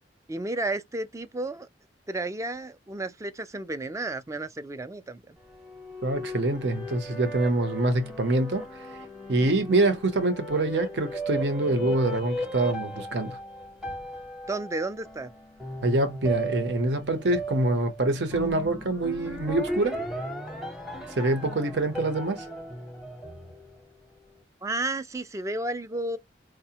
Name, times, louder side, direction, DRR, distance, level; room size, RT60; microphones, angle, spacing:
voice 1, 0.3-1.7 2.1-5.4 14.5-15.3 24.6-26.2, right 2 dB, 15° right, 0.4 m, -32 dB
sound 1, 5.4-24.0, equal, ahead, 0.8 m, -36 dB
voice 2, 6.0-8.7 9.3-13.4 15.8-20.0 21.2-22.4, right 2 dB, 70° right, 0.8 m, -25 dB
4.7 x 2.1 x 2.7 m
head